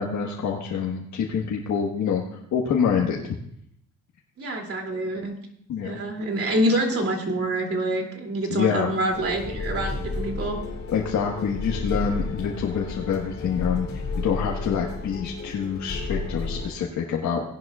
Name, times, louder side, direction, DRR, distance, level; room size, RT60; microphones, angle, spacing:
voice 1, 0.0-2.2 2.5-3.3 5.7-6.0 8.5-8.9 10.9-17.4, left 7 dB, 70° left, -1 dB, 1.5 m, -26 dB
voice 2, 4.4-5.3 5.8-10.6, right 1 dB, 50° right, 2 dB, 2.8 m, -26 dB
sound 1, 9.1-16.7, left 3 dB, 50° left, 2.6 m, -32 dB
17.5 x 11.0 x 2.4 m, 0.71 s
cardioid pair, 90°, 30 cm